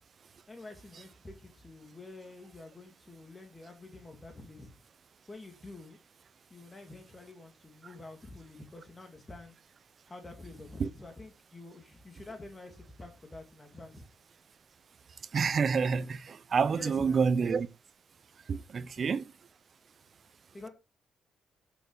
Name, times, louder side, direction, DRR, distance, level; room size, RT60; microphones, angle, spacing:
voice 1, 0.5-4.7 5.3-6.0 6.5-9.5 10.1-14.0 16.7-17.3 18.8-19.1 20.5-20.7, left 2 dB, 20° left, 2.2 m, -48 dB
voice 2, 15.3-17.7 18.5-19.3, right 5 dB, 45° right, 0.8 m, -28 dB
9.2 x 6.9 x 4.8 m
cardioid pair, 90°, 0 cm